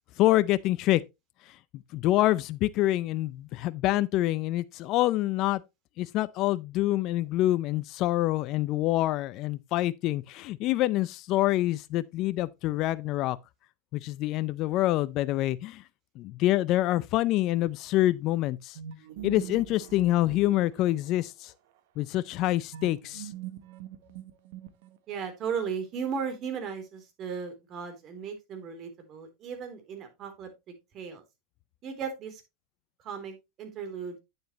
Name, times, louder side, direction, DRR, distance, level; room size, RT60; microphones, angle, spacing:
voice 1, 0.2-1.0 1.7-5.6 6.0-13.4 13.9-15.8 16.2-18.8 19.2-21.5 22.0-23.3, left 15 dB, 50° left, 0.5 m, -26 dB
sound 1, 18.7-21.3 22.7-25.2, right 11 dB, 70° right, 1.1 m, -43 dB
voice 2, 25.1-31.2 31.8-32.4 33.0-34.2, right 6 dB, 45° right, 3.5 m, -36 dB
9.1 x 7.8 x 3.1 m
hypercardioid pair, 110°, 0 cm